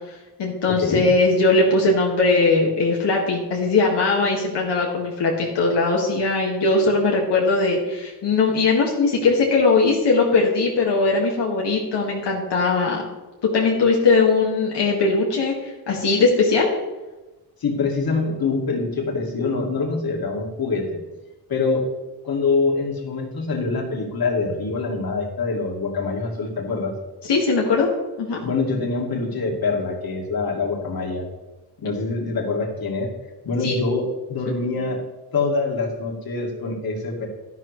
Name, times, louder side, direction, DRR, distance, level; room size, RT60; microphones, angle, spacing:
voice 1, 0.1-13.0 13.4-16.7 27.2-27.9 28.2-28.4 33.6-33.8, left 3 dB, 75° left, -2 dB, 2.0 m, -20 dB
voice 2, 17.6-21.0 21.5-21.8 22.2-26.9 28.4-31.3 31.8-33.1 33.4-35.1 35.3-37.3, left 3 dB, 60° left, 1 dB, 2.4 m, -25 dB
12.0 x 12.0 x 3.2 m, 1.1 s
wide cardioid pair, 135°, 41 cm